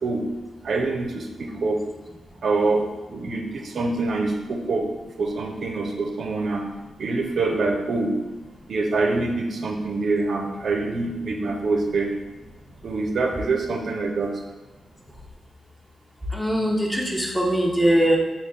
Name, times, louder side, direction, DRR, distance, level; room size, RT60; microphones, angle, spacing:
voice 1, 0.6-1.8 2.4-2.8 3.1-4.9 5.2-6.7 7.0-8.1 8.7-12.1 12.8-14.3, right 3 dB, 65° right, 2 dB, 0.4 m, -25 dB
voice 2, 16.3-18.2, equal, 5° left, 0 dB, 0.6 m, -21 dB
3.3 x 2.3 x 3.8 m, 1.1 s
cardioid pair, 70°, 0 cm